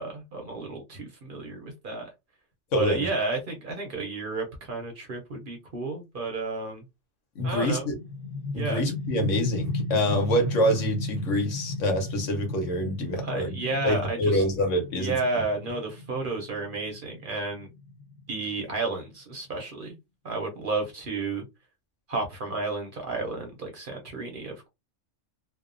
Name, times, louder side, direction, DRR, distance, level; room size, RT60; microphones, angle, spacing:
voice 1, 0.0-2.1 2.8-6.8 7.4-7.9 8.5-8.8 13.2-14.4 14.9-17.7 18.3-19.9 20.2-21.4 22.1-24.7, right 3 dB, 55° right, 0.7 m, -32 dB
voice 2, 2.7-3.1 7.3-7.9 8.5-13.6 13.8-15.2, equal, 80° left, 1.2 m, -26 dB
sound 1, 7.4-18.8, left 2 dB, 5° left, 0.7 m, -35 dB
2.7 x 2.0 x 2.4 m
omnidirectional pair, 1.3 m